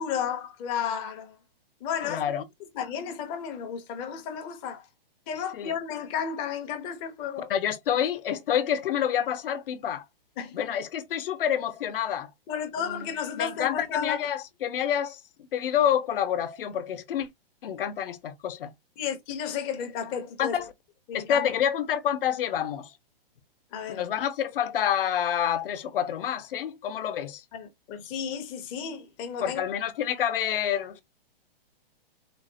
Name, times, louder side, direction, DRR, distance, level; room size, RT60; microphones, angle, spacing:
voice 1, 0.0-1.4 1.8-2.2 2.8-4.9 5.3-7.5 10.4-10.6 12.5-14.3 19.0-20.6 21.1-21.5 23.7-24.0 27.5-29.6, left 7 dB, 20° left, 0.5 m, -33 dB
voice 2, 2.0-2.4 5.5-5.7 7.5-10.0 10.5-12.3 12.8-15.2 15.5-17.3 17.6-18.7 20.4-20.7 21.1-22.9 23.9-27.4 29.4-31.0, left 9 dB, 65° left, 0.8 m, -28 dB
3.8 x 2.1 x 2.6 m
hypercardioid pair, 150°, 30 cm